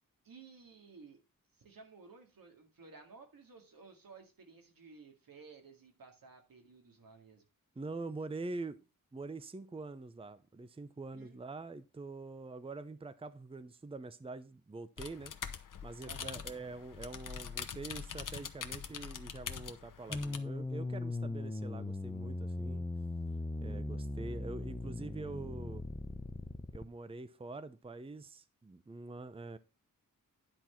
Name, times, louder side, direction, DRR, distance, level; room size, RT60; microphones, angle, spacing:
voice 1, 0.2-1.2 1.6-7.4 11.1-11.4 16.0-16.4, right 4 dB, 90° right, 2.3 m, -55 dB
voice 2, 7.8-8.8 9.1-15.3 15.8-22.8 23.6-25.9 26.7-29.6, right 3 dB, 15° right, 0.6 m, -45 dB
sound 1, 15.0-20.4, left 7 dB, 70° left, 0.9 m, -43 dB
sound 2, 20.1-26.8, left 2 dB, 15° left, 0.9 m, -39 dB
10.5 x 4.6 x 5.7 m
wide cardioid pair, 120°, 33 cm